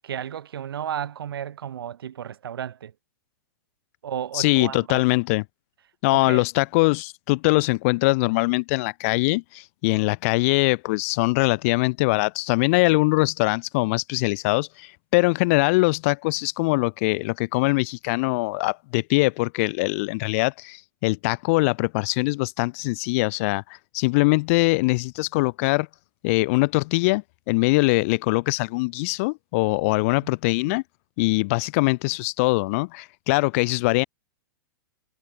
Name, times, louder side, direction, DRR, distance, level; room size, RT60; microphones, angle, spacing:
voice 1, 0.0-2.9 4.0-5.0 6.1-6.4 30.2-30.3 30.6-30.8, right 9 dB, 85° right, 0.9 m, -33 dB
voice 2, 4.3-5.4 6.0-23.6 23.9-25.9 26.2-30.8 31.2-34.0, left 25 dB, 35° left, 0.3 m, -22 dB
hypercardioid pair, 150°, 12 cm